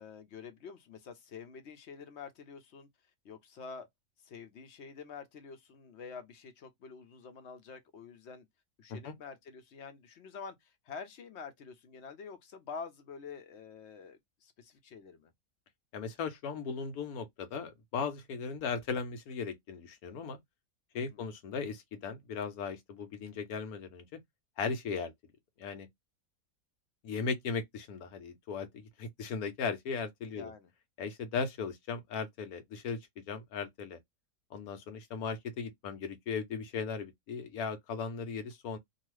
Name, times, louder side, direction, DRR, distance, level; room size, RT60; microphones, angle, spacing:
voice 1, 0.0-2.9 3.2-3.9 4.2-8.5 8.8-15.3 20.9-21.3 30.3-30.7, left 5 dB, 60° left, 0.8 m, -47 dB
voice 2, 15.9-20.4 20.9-24.0 24.6-25.1 25.6-25.9 27.0-30.5 31.0-34.0 34.5-38.8, left 5 dB, 85° left, 1.2 m, -37 dB
2.7 x 2.3 x 3.1 m
omnidirectional pair, 1.5 m